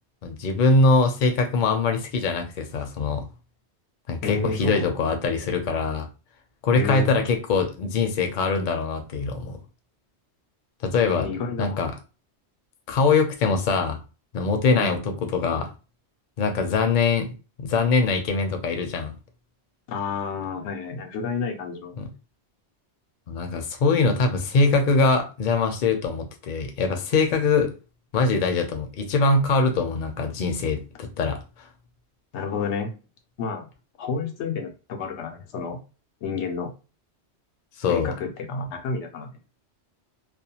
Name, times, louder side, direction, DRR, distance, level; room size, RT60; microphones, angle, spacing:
voice 1, 0.2-3.2 4.1-6.1 6.6-9.6 10.8-11.3 11.6-11.9 12.9-14.0 14.3-15.0 15.3-15.7 16.4-17.3 17.6-19.1 22.0-22.1 23.3-27.7 28.1-31.4 37.8-38.1, left 4 dB, 55° left, 5 dB, 0.7 m, -22 dB
voice 2, 4.2-4.9 6.7-7.1 11.1-11.8 14.7-15.0 19.9-22.0 32.3-32.9 33.4-33.6 34.0-35.8 36.2-36.7 37.9-39.3, left 5 dB, 85° left, 4 dB, 0.9 m, -30 dB
2.4 x 2.2 x 2.8 m, 0.32 s
omnidirectional pair, 1.1 m